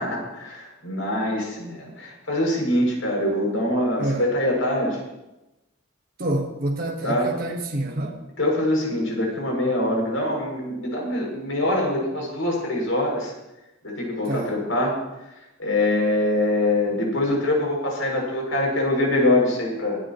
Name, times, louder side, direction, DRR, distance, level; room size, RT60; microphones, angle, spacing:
voice 1, 0.0-5.0 7.0-7.3 8.4-13.3 13.8-15.0 15.6-20.0, left 1 dB, 90° left, -1 dB, 7.0 m, -24 dB
voice 2, 4.0-4.3 6.2-8.2 14.3-14.5, right 1 dB, 50° right, 0 dB, 1.6 m, -27 dB
24.0 x 13.0 x 3.2 m, 0.96 s
head